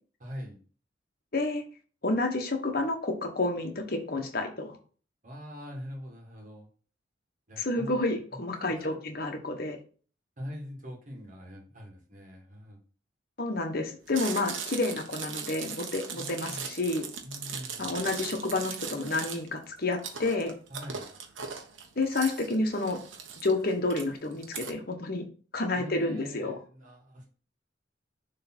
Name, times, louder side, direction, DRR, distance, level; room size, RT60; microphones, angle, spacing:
voice 1, 0.2-0.6 5.2-6.7 7.5-8.0 8.6-9.0 10.4-12.8 16.1-16.7 17.2-17.9 20.7-21.1 25.7-27.3, equal, 40° right, 0 dB, 1.8 m, -43 dB
voice 2, 1.3-1.6 2.0-4.8 7.6-9.8 13.4-17.1 17.8-20.5 22.0-23.0 23.4-25.2 25.5-26.6, left 2 dB, 50° left, 4 dB, 1.2 m, -30 dB
Chewing mastication, 14.1-24.7, right 6 dB, 80° right, 1.1 m, -39 dB
6.6 x 3.3 x 4.3 m, 0.40 s
head